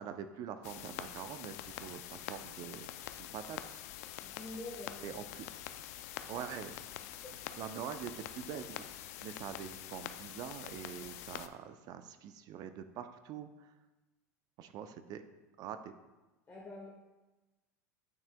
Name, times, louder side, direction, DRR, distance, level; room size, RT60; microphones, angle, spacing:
voice 1, 0.0-2.9 3.2-3.8 5.0-5.5 6.3-6.8 7.5-13.7 14.6-15.2 15.6-15.9, right 8 dB, 50° right, 9 dB, 0.5 m, -44 dB
sound 1, 0.6-11.5, left 12 dB, 70° left, 0.4 m, -46 dB
voice 2, 4.2-5.0 5.7-6.0 7.2-7.3 16.5-16.9, left 2 dB, 25° left, -3 dB, 1.3 m, -46 dB
9.1 x 5.8 x 2.2 m, 1.1 s
hypercardioid pair, 95°, 9 cm